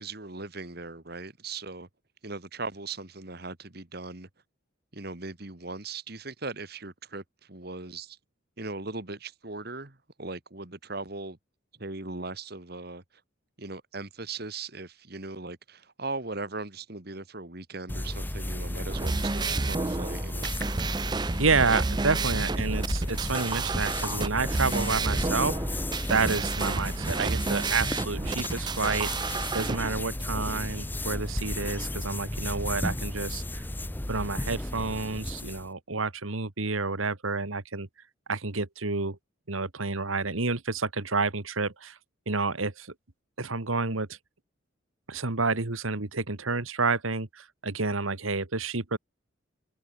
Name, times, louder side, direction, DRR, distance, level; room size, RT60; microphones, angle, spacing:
voice 1, 0.0-1.9 2.2-4.3 4.9-8.2 8.6-11.4 11.8-13.0 13.6-20.5, right 3 dB, 50° right, 2.0 m, -39 dB
sound 1, 17.9-35.7, left 1 dB, 10° left, 0.7 m, -33 dB
sound 2, 18.8-29.8, right 4 dB, 20° right, 0.4 m, -31 dB
voice 2, 21.4-25.8 26.1-29.1 29.5-33.6 34.1-37.9 38.3-39.2 39.5-42.0 42.3-42.9 43.4-44.2 45.1-49.0, right 4 dB, 85° right, 1.9 m, -29 dB
open air
head